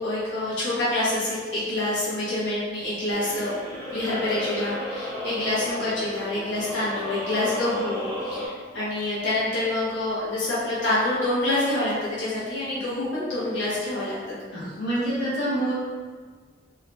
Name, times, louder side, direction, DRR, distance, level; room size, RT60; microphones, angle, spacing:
voice 1, 0.0-3.5 3.9-14.2, left 1 dB, 75° left, -11 dB, 1.3 m, -27 dB
sound 1, 3.1-8.5, left 1 dB, 15° left, 0.8 m, -34 dB
voice 2, 14.5-15.7, right 1 dB, 55° left, -12 dB, 1.3 m, -26 dB
3.7 x 2.2 x 2.7 m, 1.5 s
head